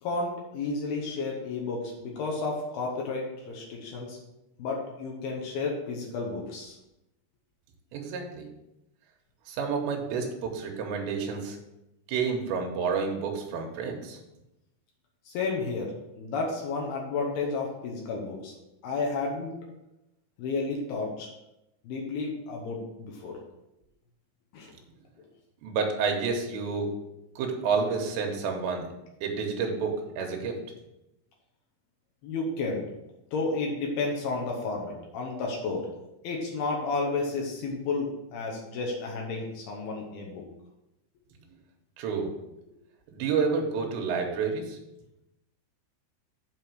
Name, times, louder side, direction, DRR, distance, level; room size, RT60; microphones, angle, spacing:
voice 1, 0.0-4.2 4.6-6.8 15.3-18.5 18.8-19.6 20.4-21.3 21.8-23.4 24.5-24.7 32.2-32.9 33.3-35.9 36.2-40.4, left 3 dB, 85° left, -1 dB, 2.0 m, -32 dB
voice 2, 7.9-8.5 9.5-11.6 12.1-14.2 25.6-26.8 27.4-28.8 29.2-30.5 42.0-42.3 43.1-44.8, right 5 dB, 75° right, 2 dB, 2.8 m, -29 dB
8.6 x 3.6 x 6.4 m, 0.92 s
omnidirectional pair, 5.8 m